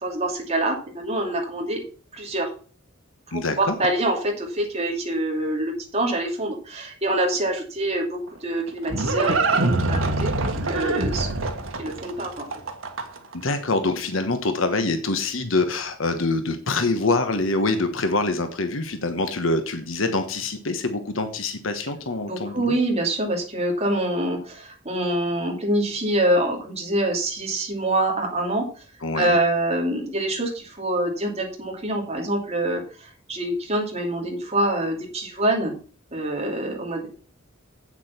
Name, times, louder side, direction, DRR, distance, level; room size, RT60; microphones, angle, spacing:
voice 1, 0.0-1.8 2.1-2.5 3.3-11.3 11.8-12.5 22.3-28.6 29.2-32.8 33.3-35.7 36.1-37.1, right 1 dB, 30° right, 1 dB, 2.9 m, -25 dB
voice 2, 3.3-3.8 13.3-22.8 29.0-29.4, left 3 dB, 80° left, 8 dB, 1.2 m, -25 dB
Livestock farm animals working animals, 8.3-13.3, right 2 dB, 85° right, 1.7 m, -25 dB
8.6 x 7.3 x 5.9 m, 0.40 s
head